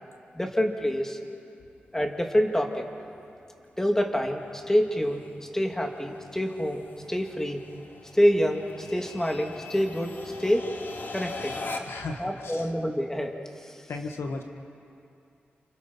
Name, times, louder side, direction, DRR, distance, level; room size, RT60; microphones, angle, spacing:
voice 1, 0.3-1.2 1.9-2.9 3.8-7.6 8.1-10.1 10.4-10.7 11.1-11.6 12.2-13.3 13.6-13.8, equal, 10° left, 2 dB, 3.0 m, -26 dB
sound 1, 1.9-12.2, left 3 dB, 55° left, 2.4 m, -43 dB
voice 2, 11.9-12.7 13.9-14.4, left 3 dB, 85° left, 4 dB, 1.6 m, -35 dB
30.0 x 28.0 x 5.7 m, 2.6 s
cardioid pair, 50°, 4 cm